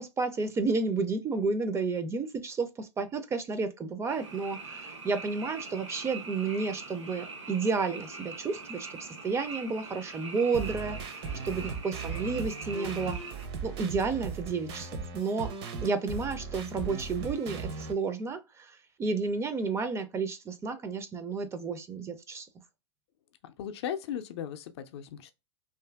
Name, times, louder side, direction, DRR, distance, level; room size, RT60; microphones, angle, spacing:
voice 1, 0.0-13.2 13.6-15.5 15.8-22.5, right 4 dB, 20° right, 0.4 m, -31 dB
Frog, 4.1-13.5, right 4 dB, 90° right, 1.0 m, -43 dB
sound 1, 10.5-17.9, right 5 dB, 60° right, 0.6 m, -38 dB
voice 2, 23.4-25.3, left 9 dB, 65° left, 0.4 m, -37 dB
2.6 x 2.4 x 2.2 m
hypercardioid pair, 105°, 15 cm